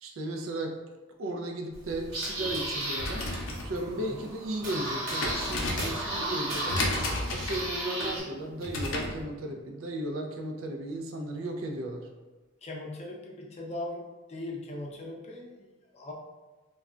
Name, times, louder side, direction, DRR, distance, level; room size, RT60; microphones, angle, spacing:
voice 1, 0.0-0.8 1.2-3.3 3.6-12.1, right 1 dB, 90° right, 3 dB, 0.4 m, -35 dB
sound 1, 1.7-8.2, right 1 dB, 70° right, 1.0 m, -34 dB
sound 2, 2.9-9.2, left 1 dB, 90° left, 0.6 m, -34 dB
voice 2, 12.6-15.7 15.9-16.1, left 2 dB, 35° left, -1 dB, 0.5 m, -39 dB
2.3 x 2.1 x 3.6 m, 1.2 s
head